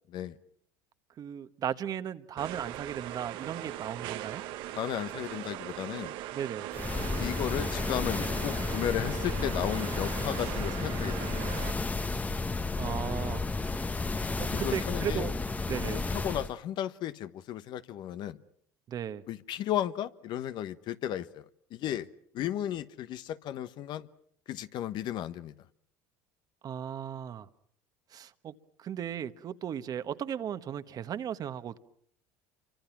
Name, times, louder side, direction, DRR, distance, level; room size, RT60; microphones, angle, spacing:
voice 1, 1.2-4.4 6.3-6.7 12.7-13.4 14.4-15.3 15.7-16.0 18.9-19.2 26.6-27.5 28.1-28.5 28.8-31.8, right 9 dB, 45° right, 1.3 m, -36 dB
sound 1, 2.4-11.7, right 14 dB, 65° right, 1.1 m, -40 dB
voice 2, 4.7-6.1 7.2-11.4 14.5-15.3 15.9-18.4 19.3-22.1 22.3-24.1 24.5-25.5, left 11 dB, 55° left, 1.1 m, -34 dB
sound 2, 6.7-16.5, left 3 dB, 15° left, 1.1 m, -32 dB
28.5 x 24.5 x 6.0 m
hypercardioid pair, 85°, 9 cm